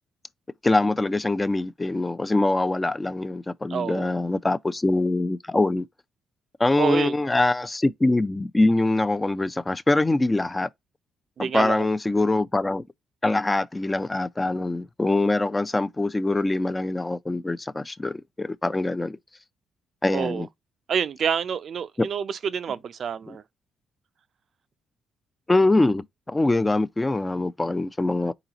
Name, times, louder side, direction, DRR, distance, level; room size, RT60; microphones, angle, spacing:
voice 1, 0.6-5.9 6.6-10.7 11.4-12.8 13.2-19.2 20.0-20.5 22.0-22.1 23.3-23.4 25.5-28.3, left 2 dB, 15° left, 0.4 m, -23 dB
voice 2, 3.7-4.1 6.8-7.1 11.4-11.8 20.1-20.5 20.9-23.4, right 7 dB, 55° right, 0.4 m, -27 dB
4.0 x 3.8 x 2.8 m
cardioid pair, 90°, 0 cm